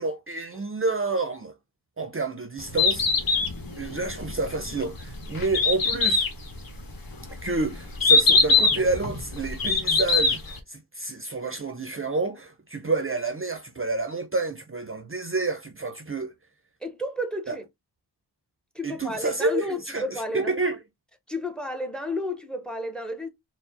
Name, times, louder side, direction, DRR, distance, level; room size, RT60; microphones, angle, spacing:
voice 1, 0.0-1.5 2.0-3.4 3.7-6.3 7.4-16.3 17.5-17.6 18.8-20.8, right 3 dB, 30° right, 0.6 m, -29 dB
Bird, 2.6-10.6, left 4 dB, 55° left, 1.3 m, -23 dB
voice 2, 16.8-17.6 18.7-20.5 21.3-23.3, left 1 dB, ahead, 0.7 m, -31 dB
4.7 x 2.1 x 3.9 m
wide cardioid pair, 120°, 41 cm